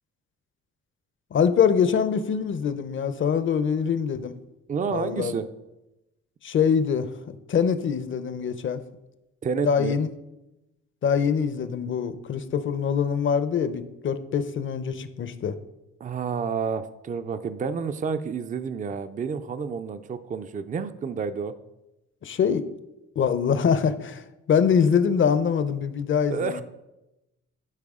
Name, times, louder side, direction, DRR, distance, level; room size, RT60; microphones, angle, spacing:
voice 1, 1.3-4.3 4.9-5.3 6.4-7.1 7.5-8.8 9.7-10.1 11.0-15.6 22.2-22.6 23.2-26.6, left 7 dB, 40° left, 11 dB, 0.6 m, -24 dB
voice 2, 4.7-5.5 9.4-10.0 16.0-21.5 26.3-26.6, right 5 dB, 25° right, 11 dB, 0.4 m, -29 dB
11.0 x 4.6 x 3.6 m, 0.95 s
cardioid pair, 90°, 30 cm